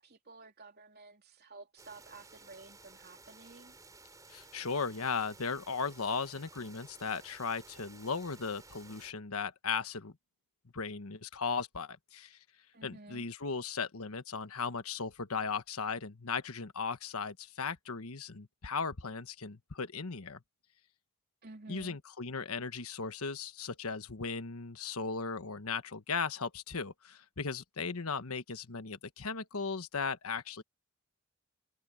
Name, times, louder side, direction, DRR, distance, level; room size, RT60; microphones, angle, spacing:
voice 1, 0.0-3.8 12.7-13.2 21.4-22.0, right 3 dB, 45° right, 3.4 m, -52 dB
sound 1, 1.8-9.1, right 3 dB, 15° right, 4.2 m, -56 dB
voice 2, 4.3-10.1 10.7-12.4 12.8-20.4 21.7-30.6, left 5 dB, 85° left, 1.3 m, -37 dB
head